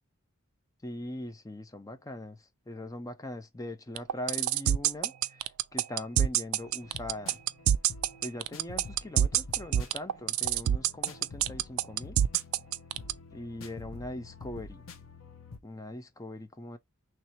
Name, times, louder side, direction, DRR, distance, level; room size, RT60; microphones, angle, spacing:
voice 1, 0.8-2.4 2.7-5.4 5.7-7.4 8.2-12.2 13.3-14.8 15.6-16.8, left 1 dB, 15° left, 0.6 m, -41 dB
sound 1, 4.0-13.1, right 10 dB, 75° right, 0.3 m, -25 dB
sound 2, 6.6-15.6, left 3 dB, 70° left, 0.7 m, -47 dB
3.2 x 2.8 x 4.4 m
head